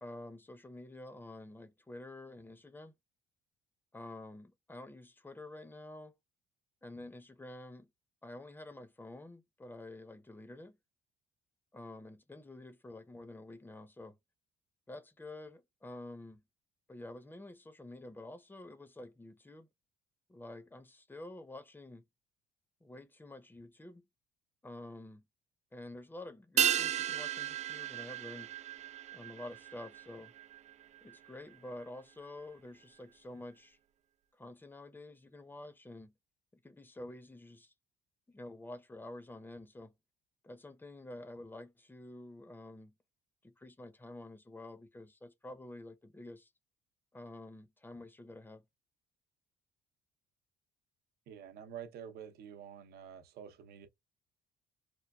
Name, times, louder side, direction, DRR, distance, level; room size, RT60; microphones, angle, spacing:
voice 1, 0.0-2.9 3.9-6.2 6.8-7.9 8.2-10.8 11.7-14.2 14.9-16.4 16.9-19.7 20.3-22.0 22.8-24.0 24.6-25.2 25.7-28.5 29.1-30.3 31.0-33.8 34.4-36.1 36.5-37.7 38.3-39.9 40.4-42.9 43.4-46.5 47.1-48.6, left 2 dB, 10° left, 0.6 m, -49 dB
sound 1, 26.6-31.3 31.5-31.6, right 10 dB, 40° right, 0.4 m, -35 dB
voice 2, 51.3-53.9, right 8 dB, 70° right, 0.8 m, -48 dB
4.5 x 2.3 x 2.3 m
cardioid pair, 110°, 17 cm